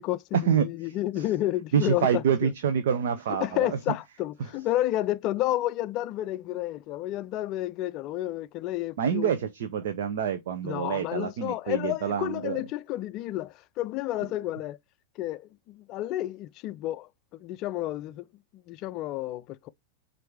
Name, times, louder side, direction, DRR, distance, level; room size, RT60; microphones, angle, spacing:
voice 1, 0.0-2.5 3.4-9.3 10.6-14.8 15.2-18.3 18.5-19.7, left 15 dB, 40° left, 0.4 m, -31 dB
voice 2, 1.7-3.8 9.0-12.6, right 8 dB, 55° right, 0.7 m, -27 dB
7.5 x 2.7 x 4.7 m
figure-of-eight pair, 90°, 0 cm